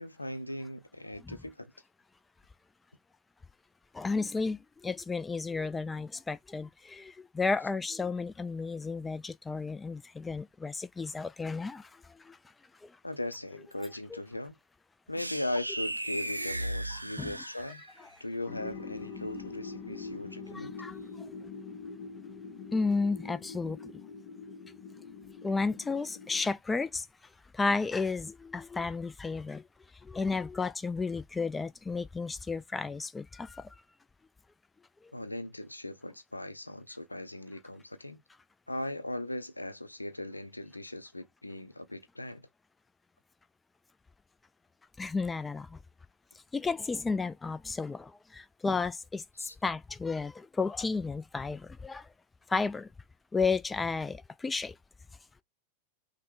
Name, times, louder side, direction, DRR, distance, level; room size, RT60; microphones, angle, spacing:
voice 1, 0.0-1.7 13.0-14.6 15.1-17.8 18.2-20.8 35.1-38.2 38.7-42.5 49.4-49.6, left 1 dB, 85° left, 0.5 m, -38 dB
voice 2, 4.0-4.6 4.8-11.8 17.2-17.3 20.5-20.9 22.7-23.8 25.4-27.0 27.6-29.6 30.1-33.5 45.0-45.7 46.5-48.0 48.6-49.2 49.6-50.3 50.6-52.0 52.5-52.9 53.3-54.2 54.4-54.7, left 4 dB, 10° left, 0.3 m, -32 dB
sound 1, 15.2-18.0, right 1 dB, 85° right, 0.4 m, -36 dB
sound 2, 18.5-26.5, left 4 dB, 45° left, 0.7 m, -44 dB
5.6 x 2.1 x 3.3 m
figure-of-eight pair, 90°, 0 cm